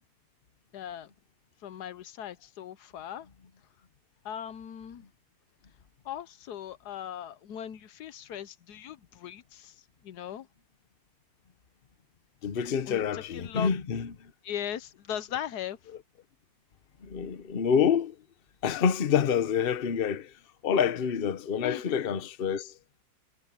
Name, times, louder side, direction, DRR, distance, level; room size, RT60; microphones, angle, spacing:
voice 1, 0.7-1.1 1.6-3.3 4.2-5.0 6.0-9.8 10.0-10.5 12.9-13.8 14.4-15.8 21.6-21.9, left 10 dB, 80° left, 1.4 m, -38 dB
voice 2, 12.4-14.3 17.0-18.2 18.6-20.3 20.6-22.8, left 7 dB, 45° left, 0.9 m, -27 dB
omnidirectional pair, 1.7 m